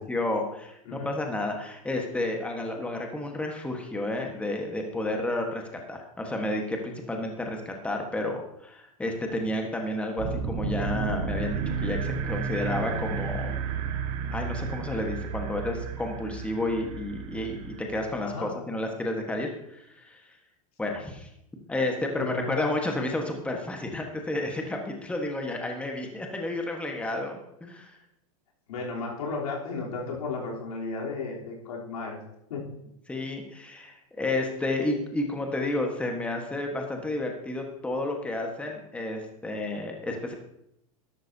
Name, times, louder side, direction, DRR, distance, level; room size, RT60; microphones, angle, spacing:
voice 1, 0.0-5.6 5.9-13.6 14.3-20.2 20.8-21.3 21.7-27.9 33.1-40.3, left 2 dB, 5° left, 2 dB, 1.4 m, -31 dB
sound 1, 10.2-18.3, right 5 dB, 50° right, 1.7 m, -32 dB
voice 2, 22.2-22.8 28.7-32.2 32.5-32.6, left 3 dB, 90° left, -3 dB, 3.5 m, -34 dB
12.5 x 12.0 x 2.8 m, 0.80 s
supercardioid pair, 130°, 18 cm